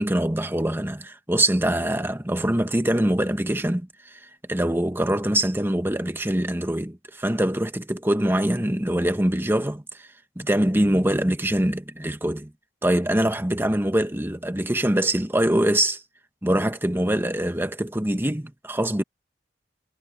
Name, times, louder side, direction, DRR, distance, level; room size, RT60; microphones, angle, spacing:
voice 1, 0.0-4.2 4.5-10.1 10.4-12.5 12.8-16.0 16.4-19.0, right 1 dB, 10° right, 1.3 m, -23 dB
head